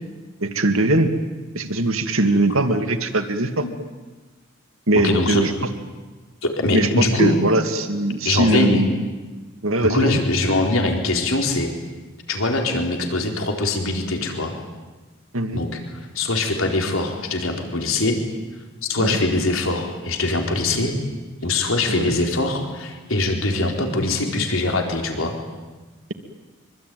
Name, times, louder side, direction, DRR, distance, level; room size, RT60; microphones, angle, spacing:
voice 1, 0.4-1.1 1.5-3.7 4.9-5.5 6.7-8.9 9.6-10.1 15.3-15.6 19.0-19.2 21.9-22.2, right 2 dB, 70° right, 6 dB, 2.5 m, -21 dB
voice 2, 5.0-5.4 6.4-7.4 8.2-8.8 9.9-11.7 12.3-14.5 15.5-18.2 18.9-21.0 21.4-25.3, left 2 dB, 70° left, 2 dB, 4.2 m, -22 dB
25.0 x 24.5 x 9.5 m, 1.3 s
head